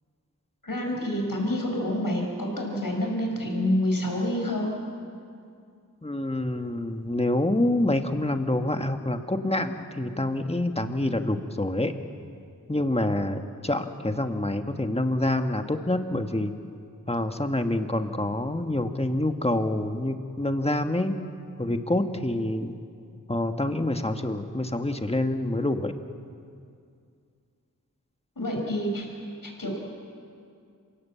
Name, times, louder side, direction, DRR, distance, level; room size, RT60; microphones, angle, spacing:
voice 1, 0.6-4.7 28.4-29.1 29.4-29.8, left 1 dB, 85° left, 1 dB, 5.1 m, -27 dB
voice 2, 6.0-11.9 12.7-16.5 17.1-21.1 21.6-22.7 23.3-25.9, left 1 dB, 20° left, 6 dB, 1.5 m, -27 dB
26.5 x 17.5 x 8.4 m, 2.3 s
wide cardioid pair, 50°, 33 cm